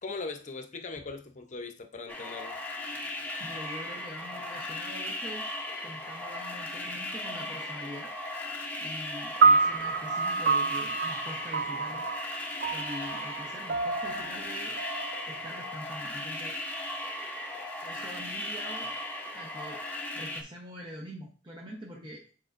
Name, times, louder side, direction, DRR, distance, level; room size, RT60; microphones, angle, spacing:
voice 1, 0.0-2.6, left 3 dB, 40° left, 7 dB, 0.7 m, -39 dB
sound 1, 2.1-20.4, left 1 dB, 10° left, 0.8 m, -37 dB
voice 2, 3.0-5.5 5.8-12.1 12.7-14.8 15.3-16.8 17.8-19.0 19.3-19.8 20.1-22.2, equal, 25° right, -2 dB, 0.9 m, -44 dB
sound 2, 9.4-15.9, right 4 dB, 55° right, 0.3 m, -28 dB
8.9 x 4.3 x 2.5 m, 0.37 s
head